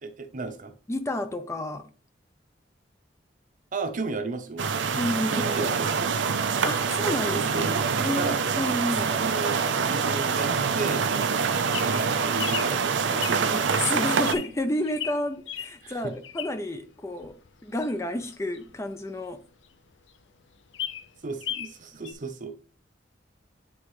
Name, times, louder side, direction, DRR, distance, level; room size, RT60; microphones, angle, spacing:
voice 1, 0.0-0.7 3.7-4.9 5.3-6.2 6.6-6.9 7.3-8.4 9.1-11.4 11.9-13.8 15.8-16.1 21.2-22.5, right 3 dB, 45° right, 0.7 m, -34 dB
voice 2, 0.9-1.9 5.0-5.7 6.6-9.2 13.5-19.4, left 1 dB, 15° left, 0.4 m, -31 dB
sound 1, 4.6-14.3, right 5 dB, 80° right, 0.5 m, -25 dB
Bird vocalization bird call bird song, 11.3-16.8 17.2-19.4 19.8-19.9 20.1-20.2 20.5-21.8 22.0-22.1, left 10 dB, 80° left, 0.5 m, -36 dB
9.5 x 3.6 x 3.1 m
head